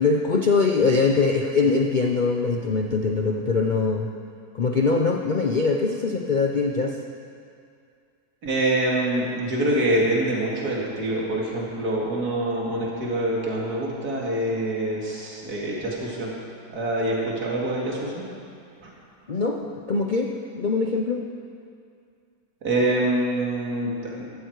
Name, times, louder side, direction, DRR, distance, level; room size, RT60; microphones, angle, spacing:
voice 1, 0.0-4.1 4.5-7.0 19.3-21.2, left 4 dB, 45° left, 1 dB, 0.6 m, -22 dB
voice 2, 8.4-16.3 16.7-18.2 18.8-18.9 22.6-24.3, right 1 dB, 65° right, -4 dB, 2.8 m, -25 dB
15.5 x 14.0 x 4.7 m, 2.4 s
omnidirectional pair, 1.7 m